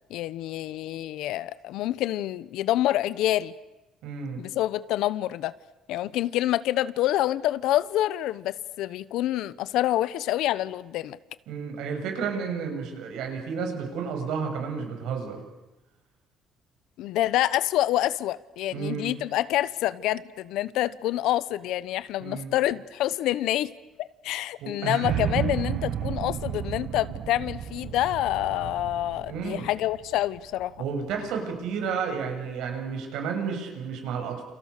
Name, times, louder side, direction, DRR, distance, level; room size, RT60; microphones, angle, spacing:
voice 1, 0.1-3.5 4.4-5.5 5.9-11.2 17.0-23.7 24.0-30.7, left 14 dB, 80° left, 0.9 m, -27 dB
voice 2, 4.0-4.4 11.5-15.4 18.7-19.2 22.2-22.5 24.6-25.5 29.3-29.7 30.8-34.4, right 6 dB, 80° right, 7.6 m, -31 dB
sound 1, 25.0-31.1, right 10 dB, 55° right, 1.5 m, -33 dB
29.5 x 29.5 x 6.7 m
cardioid pair, 145°, 0 cm